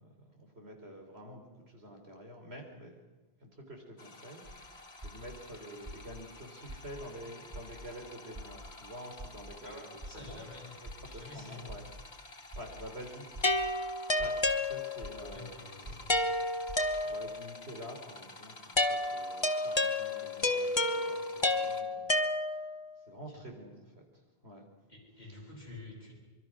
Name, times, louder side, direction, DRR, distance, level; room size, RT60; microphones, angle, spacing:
voice 1, 0.0-3.0 3.4-9.9 10.1-10.4 10.8-11.9 12.3-14.3 14.6-16.0 16.4-22.2 22.4-22.6 23.0-24.0 24.4-24.6 25.3-25.5, equal, 80° right, 2 dB, 4.5 m, -48 dB
sound 1, 4.0-21.8, left 3 dB, 85° left, 2.2 m, -51 dB
sound 2, 4.4-4.5 5.0-5.4 5.9-6.2 6.7-7.0 7.5-7.9 8.3-8.7 9.2-9.5 10.0-10.4 10.9-11.2 11.7-12.0 12.5-12.9 13.3-13.7 14.2-14.5 15.0-15.4 15.9-16.2 16.7-17.0, equal, 30° right, 1.6 m, -45 dB
voice 2, 9.6-10.7 11.1-11.7 15.3-16.2 23.3-23.5 24.9-26.2, left 2 dB, 40° left, -2 dB, 7.0 m, -49 dB
sound 3, 13.4-15.2 16.1-17.5 18.8-22.9, left 2 dB, 25° left, 1.2 m, -30 dB
24.5 x 24.0 x 6.3 m, 1.2 s
omnidirectional pair, 1.1 m